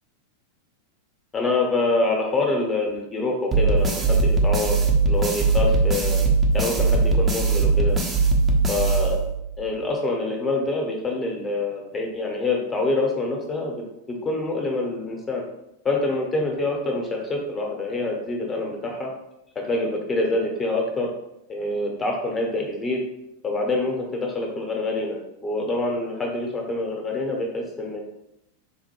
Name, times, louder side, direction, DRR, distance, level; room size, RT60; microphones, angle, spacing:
voice 1, 1.3-6.2 6.5-8.0 8.7-9.3 9.6-13.7 14.1-15.4 15.8-19.1 19.5-21.1 21.5-23.0 23.4-28.0, left 2 dB, 20° left, 0 dB, 0.8 m, -26 dB
sound 1, 3.5-9.6, right 3 dB, 20° right, 0.6 m, -20 dB
4.0 x 2.1 x 3.0 m, 0.84 s
figure-of-eight pair, 90°, 0 cm